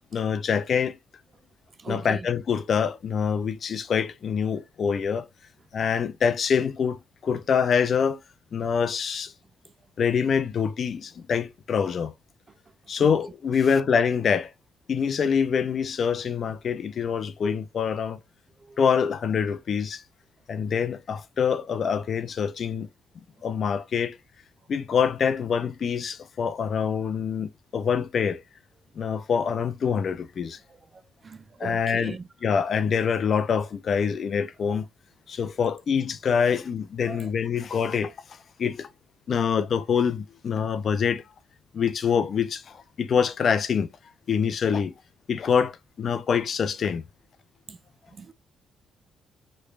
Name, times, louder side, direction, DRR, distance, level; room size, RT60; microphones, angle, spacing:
voice 1, 0.1-1.0 1.9-5.3 5.7-8.2 8.5-9.3 10.0-12.1 12.9-14.5 14.9-18.2 18.8-20.0 20.5-22.9 23.4-24.2 24.7-28.4 29.0-30.6 31.6-34.9 35.3-38.9 39.3-41.2 41.7-43.9 44.3-44.9 45.3-47.0, left 6 dB, 55° left, 0.4 m, -25 dB
voice 2, 1.8-2.3 13.0-13.1 18.6-18.8 31.2-32.3 37.1-37.3 47.7-47.8 48.1-48.3, right 4 dB, 35° right, 0.5 m, -39 dB
3.2 x 3.1 x 2.4 m
cardioid pair, 90°, 0 cm